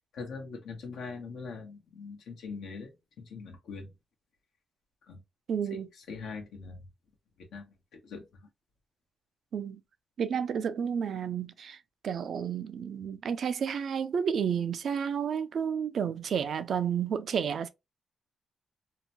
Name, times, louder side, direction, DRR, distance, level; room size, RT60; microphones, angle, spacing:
voice 1, 0.1-2.9 3.2-3.9 5.1-5.2 5.7-5.8 6.1-6.8 7.5-7.7 7.9-8.2, left 4 dB, 85° left, 0.9 m, -41 dB
voice 2, 5.5-5.9 9.5-9.8 10.2-11.8 12.0-17.7, right 7 dB, 70° right, 0.4 m, -31 dB
2.8 x 2.1 x 2.7 m
cardioid pair, 75°, 0 cm